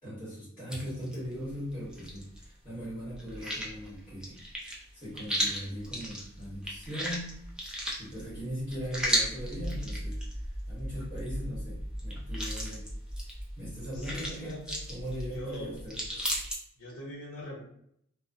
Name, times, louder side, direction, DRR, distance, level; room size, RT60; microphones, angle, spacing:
voice 1, 0.0-4.4 4.9-7.3 8.0-10.2 10.7-12.8 13.6-14.5 14.9-16.0, equal, 15° left, -11 dB, 1.3 m, -39 dB
sound 1, 0.7-2.5 2.8-16.6, equal, 5° right, 0.4 m, -36 dB
voice 2, 13.9-14.8 15.3-15.8 16.1-16.2 16.8-17.6, left 1 dB, 90° left, -3 dB, 0.7 m, -42 dB
2.9 x 2.0 x 2.5 m, 0.71 s
head